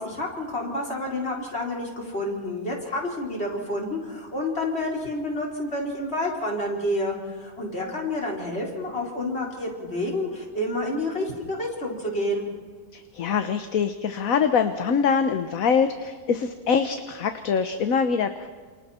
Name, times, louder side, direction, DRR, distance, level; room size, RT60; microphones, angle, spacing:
voice 1, 0.0-12.5, left 1 dB, 40° left, -2 dB, 4.9 m, -29 dB
voice 2, 12.9-18.5, left 6 dB, 65° left, 8 dB, 1.4 m, -24 dB
29.5 x 28.0 x 4.4 m, 1.6 s
omnidirectional pair, 1.6 m